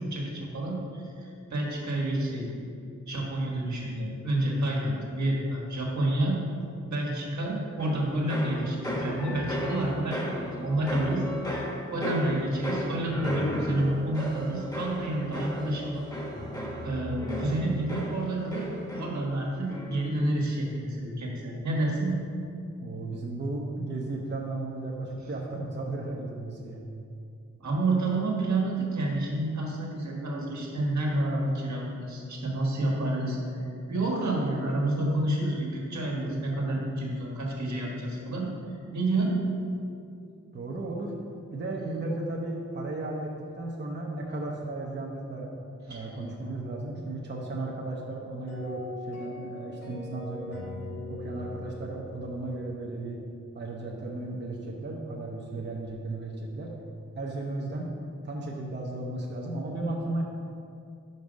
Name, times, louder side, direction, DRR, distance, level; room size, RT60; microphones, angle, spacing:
voice 1, 0.1-2.5 3.1-6.4 6.9-11.6 11.9-16.1 16.8-22.2 27.6-38.5 38.9-39.4 45.9-46.0, right 1 dB, 75° right, -2 dB, 1.4 m, -29 dB
sound 1, 7.8-19.4 19.7-20.2, equal, 15° left, 1.0 m, -34 dB
voice 2, 22.8-26.8 40.5-41.1 41.5-45.5 45.9-50.7 51.1-53.2 53.5-56.8 57.2-57.9 58.2-60.2, right 2 dB, 40° right, -1 dB, 0.7 m, -35 dB
sound 2, 48.5-53.6, left 2 dB, 65° left, 1.7 m, -41 dB
5.4 x 4.9 x 6.2 m, 2.5 s
wide cardioid pair, 135°, 29 cm